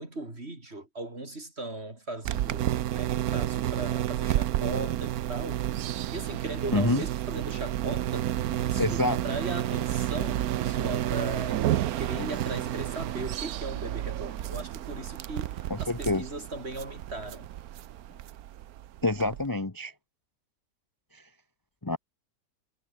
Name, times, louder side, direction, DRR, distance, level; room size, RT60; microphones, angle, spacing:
voice 1, 0.0-5.6 6.1-8.3 8.6-11.6 11.9-17.5, right 2 dB, 40° right, 4.8 m, -38 dB
sound 1, 2.2-19.5, right 12 dB, 70° right, 1.2 m, -31 dB
voice 2, 6.7-7.0 8.8-9.2 12.2-12.3 15.7-16.2 19.0-19.9 21.1-21.2 21.8-22.0, left 2 dB, 15° left, 1.0 m, -27 dB
omnidirectional pair, 1.7 m